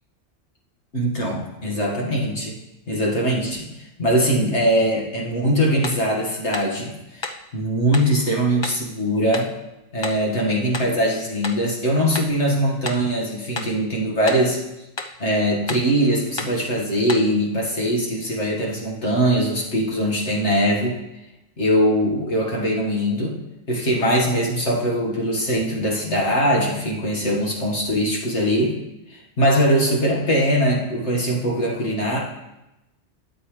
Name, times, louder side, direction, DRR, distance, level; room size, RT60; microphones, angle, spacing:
voice 1, 0.9-2.6 2.9-3.7 4.0-7.3 7.5-9.5 9.9-14.6 15.2-21.0 21.6-23.4 23.7-28.8 29.1-32.2, equal, 70° left, -2 dB, 2.2 m, -21 dB
sound 1, 5.8-6.1 6.5-6.8 7.2-7.5 7.9-8.1 8.6-8.9 9.3-9.6 10.0-10.3 10.7-11.0 11.4-11.7 12.1-12.4 12.9-13.1 13.6-13.8 14.3-14.5 15.0-15.2 15.7-15.9 16.4-16.6 17.1-17.3, left 3 dB, 30° left, 0.5 m, -32 dB
12.5 x 8.2 x 3.3 m, 0.94 s
omnidirectional pair, 1.2 m